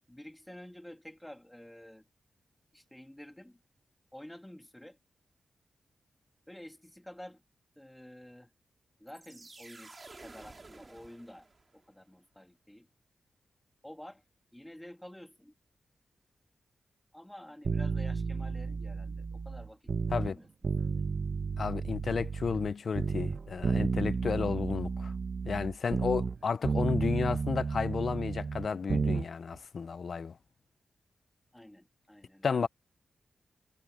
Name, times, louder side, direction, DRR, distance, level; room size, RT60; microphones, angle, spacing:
voice 1, 0.1-2.1 2.7-3.6 4.1-5.0 6.5-7.4 7.8-8.5 9.0-11.5 11.7-12.9 13.8-14.2 14.5-15.5 17.1-20.5 20.9-21.0 31.5-32.7, left 1 dB, 5° left, 2.0 m, -50 dB
sound 1, 9.1-11.9, right 3 dB, 30° right, 4.0 m, -52 dB
sound 2, 17.6-20.3 20.6-22.7 22.9-26.4 26.6-29.3 29.5-29.6, right 5 dB, 50° right, 0.9 m, -32 dB
voice 2, 21.6-25.1 25.4-30.4 32.4-32.7, left 5 dB, 55° left, 0.5 m, -32 dB
wide cardioid pair, 130°, 0 cm